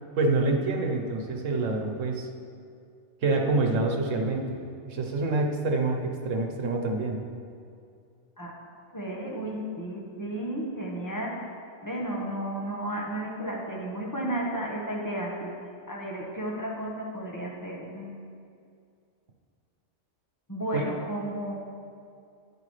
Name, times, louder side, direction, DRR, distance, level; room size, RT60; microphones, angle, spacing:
voice 1, 0.1-2.3 3.2-4.6 4.8-7.2 20.7-20.8, right 3 dB, 85° right, 2 dB, 1.3 m, -26 dB
voice 2, 8.9-11.4 11.8-15.5 15.9-18.2 20.5-21.5, right 1 dB, 15° left, -3 dB, 1.3 m, -33 dB
10.0 x 9.6 x 3.3 m, 2.4 s
omnidirectional pair, 1.3 m